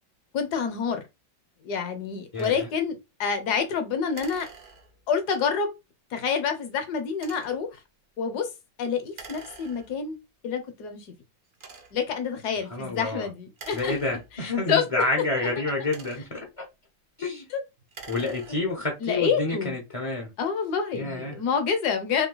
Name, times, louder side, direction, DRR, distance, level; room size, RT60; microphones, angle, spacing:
voice 1, 0.3-1.0 1.6-4.5 5.1-5.8 6.1-7.8 8.2-8.5 8.8-10.2 10.4-11.1 11.9-13.9 14.4-14.8 15.2-15.3 17.5-17.6 19.0-19.8 20.4-22.3, left 6 dB, 65° left, 1.2 m, -27 dB
voice 2, 2.3-2.7 12.7-13.3 13.7-16.6 17.2-17.5 18.1-20.3 20.9-21.4, left 2 dB, 40° left, 0.4 m, -29 dB
sound 1, 2.3-2.6 4.1-5.2 7.1-7.7 9.1-10.1 10.8-10.9 11.5-12.1 13.5-14.6 15.6-16.5 17.8-18.9, right 4 dB, 80° right, 0.4 m, -46 dB
3.8 x 2.7 x 3.8 m
omnidirectional pair, 2.0 m